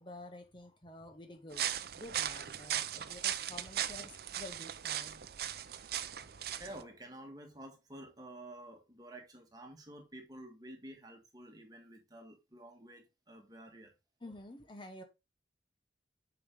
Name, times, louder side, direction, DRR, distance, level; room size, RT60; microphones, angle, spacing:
voice 1, 0.0-1.7 1.9-5.4 14.2-15.0, left 2 dB, 25° left, 0.8 m, -50 dB
sound 1, 1.5-6.8, right 10 dB, 55° right, 0.5 m, -38 dB
voice 2, 6.5-13.9, right 1 dB, 20° right, 1.7 m, -50 dB
8.5 x 5.0 x 3.5 m
head